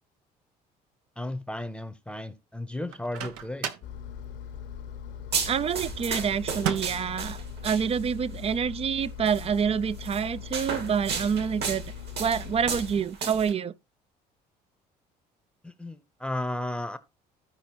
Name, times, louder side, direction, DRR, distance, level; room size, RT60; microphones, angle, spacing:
voice 1, 1.2-3.7 15.6-17.0, left 1 dB, 5° left, 0.8 m, -34 dB
Microwave oven, 2.9-4.0 6.5-7.1, right 9 dB, 80° right, 0.9 m, -34 dB
Engine, 3.8-13.0, left 8 dB, 65° left, 1.1 m, -41 dB
sound 1, 5.3-8.2 9.3-9.5 10.0-13.5, right 5 dB, 60° right, 2.0 m, -34 dB
voice 2, 5.5-7.4 7.6-11.8 12.2-13.7, right 7 dB, 30° right, 0.5 m, -27 dB
15.0 x 5.0 x 3.0 m
hypercardioid pair, 65°, 20 cm